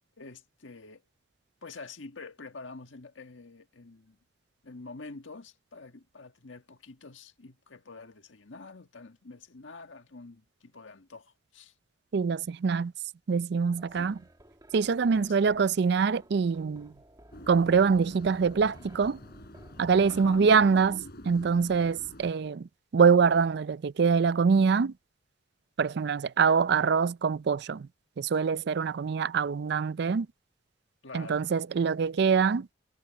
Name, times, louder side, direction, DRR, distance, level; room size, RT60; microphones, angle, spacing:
voice 1, 0.2-1.0 1.6-4.2 4.6-11.7 13.9-14.1 15.1-15.8 20.1-20.5 31.0-31.4, left 3 dB, 85° left, 1.6 m, -47 dB
voice 2, 12.1-12.9 13.3-14.1 14.7-16.9 17.5-19.2 19.8-22.7 22.9-24.9 25.8-27.9 28.2-30.3 31.1-32.7, right 5 dB, 60° right, 0.4 m, -24 dB
sound 1, 13.8-20.3, right 1 dB, 20° right, 2.2 m, -56 dB
sound 2, 17.3-22.3, left 1 dB, 55° left, 4.8 m, -47 dB
head